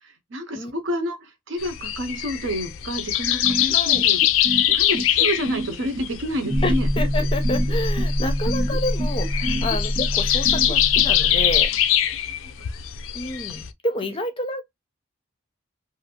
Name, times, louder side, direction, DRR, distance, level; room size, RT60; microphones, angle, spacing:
voice 1, 0.0-6.9 9.4-9.7 12.4-12.5, equal, 70° right, 0.8 m, -29 dB
sound 1, 1.6-13.7, left 12 dB, 80° left, 0.4 m, -23 dB
sound 2, 3.4-11.1, right 1 dB, 40° right, 0.5 m, -30 dB
voice 2, 3.7-4.0 6.6-11.7 13.1-14.6, left 1 dB, 25° left, 0.5 m, -29 dB
sound 3, 6.5-11.7, equal, 10° right, 0.8 m, -25 dB
2.6 x 2.6 x 2.7 m
head